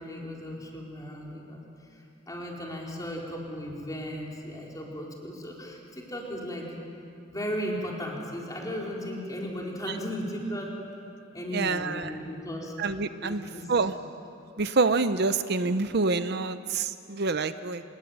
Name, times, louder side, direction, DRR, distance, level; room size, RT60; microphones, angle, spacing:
voice 1, 0.0-1.6 1.9-6.7 7.3-10.7 11.3-12.7 13.2-13.9, equal, 20° left, -2 dB, 4.4 m, -36 dB
voice 2, 11.5-12.1 12.8-13.9 14.6-17.8, right 3 dB, 55° right, 11 dB, 0.7 m, -27 dB
26.0 x 21.5 x 8.9 m, 2.6 s
head